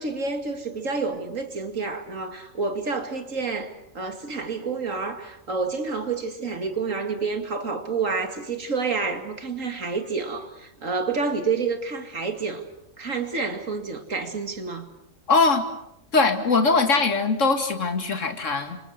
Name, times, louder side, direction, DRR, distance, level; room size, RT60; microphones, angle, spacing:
voice 1, 0.0-12.6 13.0-14.9, right 4 dB, 75° right, 2.7 m, -29 dB
voice 2, 15.3-15.7 16.1-18.8, left 4 dB, 70° left, 2.5 m, -21 dB
29.5 x 26.0 x 6.7 m
omnidirectional pair, 1.4 m